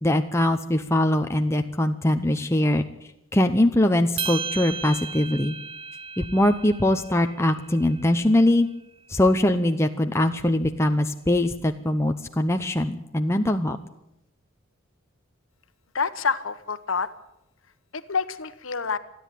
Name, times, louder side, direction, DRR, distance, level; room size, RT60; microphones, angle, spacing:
voice 1, 0.0-2.8 3.3-5.5 6.2-8.7 9.1-13.8, left 1 dB, 15° left, 5 dB, 0.8 m, -22 dB
sound 1, 4.2-8.6, right 6 dB, 25° right, 0.9 m, -35 dB
voice 2, 15.9-17.1 17.9-19.0, left 5 dB, 70° left, 12 dB, 1.2 m, -27 dB
27.5 x 10.5 x 9.3 m, 0.81 s
head